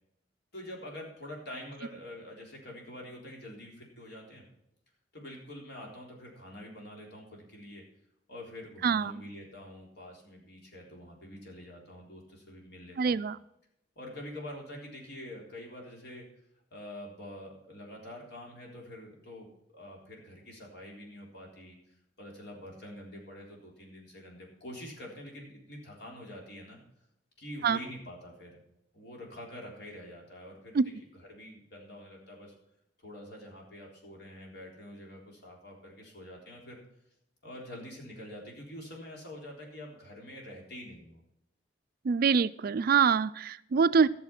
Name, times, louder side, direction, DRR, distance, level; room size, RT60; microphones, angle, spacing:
voice 1, 0.5-4.5 5.1-7.8 8.3-13.2 14.0-16.3 16.7-21.8 22.2-26.8 27.4-28.6 28.9-30.9 31.2-32.6 33.0-36.8 37.4-41.2 44.0-44.1, left 1 dB, 65° left, -1 dB, 3.8 m, -46 dB
voice 2, 13.0-13.4 27.6-27.8 30.7-30.9 42.0-44.1, right 6 dB, 55° right, 16 dB, 0.4 m, -25 dB
13.0 x 7.1 x 5.9 m, 0.78 s
head